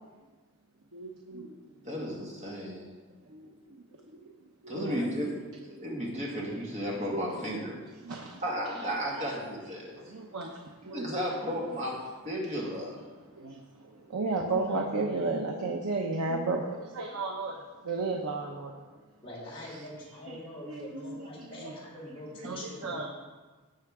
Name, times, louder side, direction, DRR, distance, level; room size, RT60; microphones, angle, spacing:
voice 1, 0.9-1.6 3.3-3.8 4.1-4.3 4.6-5.1 5.7-5.9 7.1-7.3 8.0-8.4 10.1-11.1 13.3-18.7 20.7-21.1 21.6-21.7 22.4-23.1, right 3 dB, 85° right, 2 dB, 0.9 m, -34 dB
voice 2, 1.8-2.9 4.7-7.8 8.4-10.0 10.9-11.9 12.2-13.0, equal, 30° right, -3 dB, 2.1 m, -34 dB
voice 3, 11.4-11.9 19.2-23.1, left 1 dB, 25° left, -6 dB, 3.7 m, -44 dB
17.0 x 5.8 x 3.6 m, 1.3 s
head